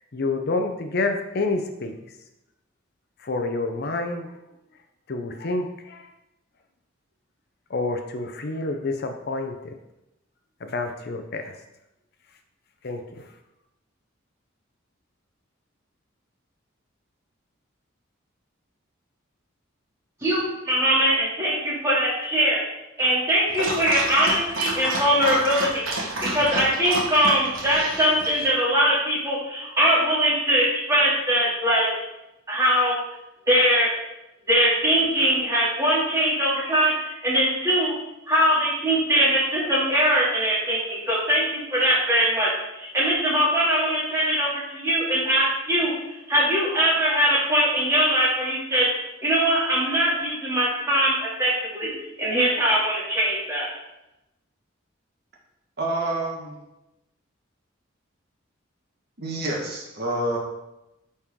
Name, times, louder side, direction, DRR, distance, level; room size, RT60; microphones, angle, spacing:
voice 1, 0.1-2.0 3.2-4.3 5.1-6.0 7.7-9.5 10.6-11.5 12.8-13.0, left 3 dB, 55° left, 6 dB, 0.6 m, -28 dB
voice 2, 20.2-22.6 23.0-25.9 26.2-31.9 32.5-33.0 33.5-33.9 34.5-37.9 38.3-48.9 49.2-51.9 52.2-53.7, equal, 15° right, -7 dB, 2.7 m, -22 dB
Dog, 23.5-28.5, right 2 dB, 80° right, 1.6 m, -30 dB
voice 3, 55.8-56.6 59.2-60.4, right 1 dB, 55° right, -2 dB, 1.6 m, -27 dB
9.2 x 4.3 x 3.7 m, 0.93 s
head